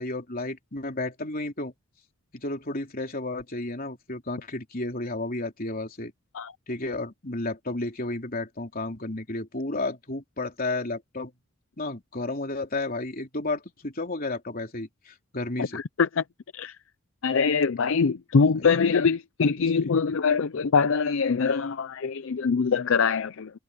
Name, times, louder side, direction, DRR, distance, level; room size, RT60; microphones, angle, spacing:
voice 1, 0.0-1.7 2.3-6.1 6.7-11.3 11.8-15.8 18.4-18.7 19.8-19.9, left 2 dB, 40° left, 3.6 m, -32 dB
voice 2, 15.6-16.2 16.5-16.8 17.2-23.5, left 5 dB, 60° left, 0.5 m, -23 dB
head